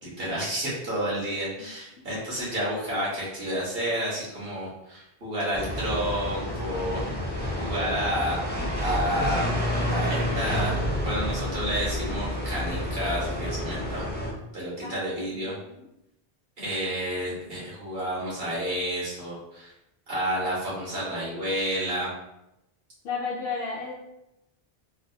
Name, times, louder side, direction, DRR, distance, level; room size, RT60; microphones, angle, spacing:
voice 1, 0.0-7.0 7.6-8.4 8.8-9.5 9.9-14.0 14.5-15.6 16.6-19.7 20.1-22.1, equal, 70° right, -7 dB, 1.5 m, -30 dB
sound 1, 5.5-14.3, equal, 10° left, 0.5 m, -29 dB
voice 2, 14.8-15.7 23.0-23.9, left 4 dB, 75° left, -6 dB, 0.8 m, -34 dB
3.3 x 2.3 x 2.7 m, 0.87 s
omnidirectional pair, 1.0 m